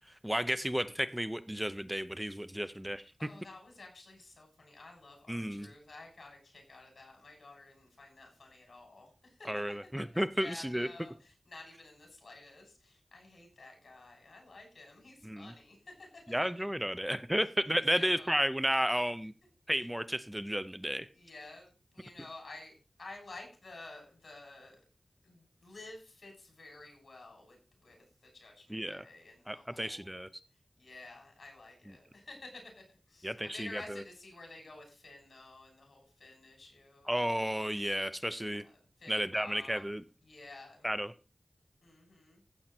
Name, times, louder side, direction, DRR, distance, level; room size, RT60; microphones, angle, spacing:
voice 1, 0.2-3.0 5.3-5.7 9.4-10.9 15.2-15.5 16.3-19.3 19.7-21.1 28.7-29.0 29.5-30.3 33.2-34.0 37.1-38.6 39.1-40.0 40.8-41.1, equal, 10° right, 13 dB, 0.7 m, -32 dB
voice 2, 3.2-9.7 10.3-16.6 17.7-18.3 21.1-21.7 21.9-22.7 23.0-24.8 25.2-27.6 27.8-30.2 30.8-32.7 33.1-37.1 38.5-40.0 40.2-40.9 41.8-42.4, left 2 dB, 80° left, 2 dB, 6.9 m, -52 dB
15.0 x 8.0 x 4.4 m, 0.33 s
wide cardioid pair, 70°, 0 cm